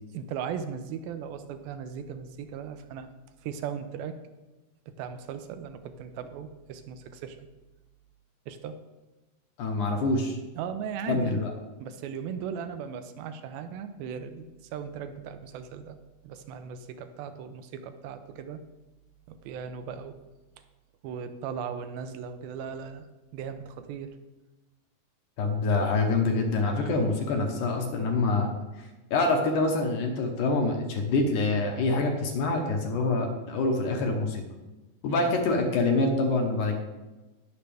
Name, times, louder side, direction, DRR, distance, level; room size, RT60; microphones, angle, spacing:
voice 1, 0.1-3.1 3.4-4.2 4.9-7.4 8.5-8.8 10.6-11.4 11.8-16.0 16.2-18.6 19.3-20.2 21.0-23.1 23.3-24.2 26.7-27.1 35.1-35.3, right 7 dB, 80° right, 9 dB, 2.5 m, -37 dB
voice 2, 9.6-10.4 11.1-11.5 25.4-28.5 28.8-34.4 35.0-36.8, left 3 dB, 65° left, 2 dB, 2.3 m, -26 dB
18.5 x 6.5 x 3.4 m, 1.1 s
omnidirectional pair, 4.3 m